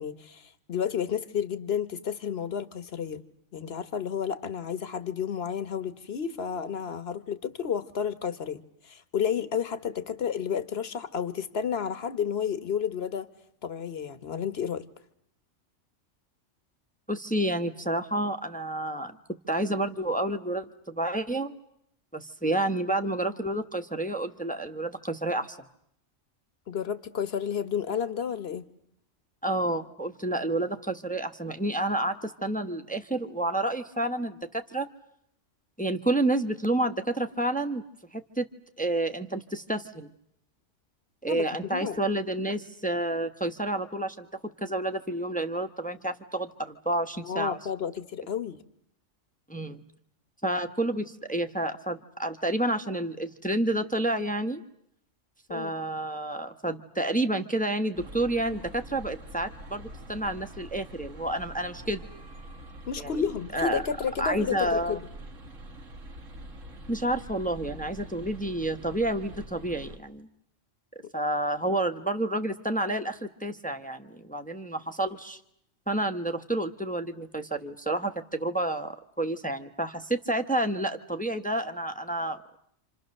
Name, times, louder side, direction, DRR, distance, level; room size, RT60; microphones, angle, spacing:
voice 1, 0.0-3.2 3.5-13.3 13.6-14.8 26.7-28.6 41.2-41.4 41.7-42.0 47.2-48.6 55.5-55.7 62.9-65.0, left 7 dB, 55° left, 12 dB, 1.4 m, -31 dB
voice 2, 17.1-19.1 19.5-21.5 22.1-25.6 29.4-34.9 35.8-37.8 38.1-38.5 38.8-40.1 41.2-44.3 44.6-47.6 49.5-49.8 50.4-54.6 55.5-62.0 63.0-63.2 63.5-63.8 64.2-65.0 66.9-70.3 71.1-75.4 75.9-82.6, right 1 dB, 5° left, 7 dB, 1.1 m, -29 dB
sound 1, 57.9-70.0, right 1 dB, 75° right, 1.9 m, -45 dB
28.5 x 27.0 x 6.6 m, 0.72 s
omnidirectional pair, 1.3 m